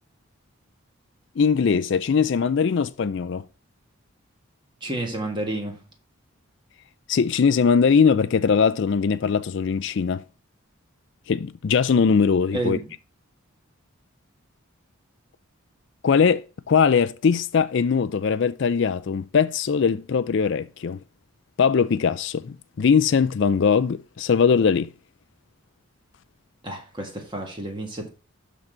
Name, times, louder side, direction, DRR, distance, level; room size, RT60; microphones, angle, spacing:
voice 1, 1.4-3.4 7.1-10.2 11.3-12.8 16.0-21.0 21.6-24.9, left 6 dB, 55° left, 0.4 m, -21 dB
voice 2, 4.8-5.8 12.5-12.9 26.6-28.1, right 2 dB, 20° right, 1.7 m, -30 dB
12.0 x 4.0 x 4.4 m
head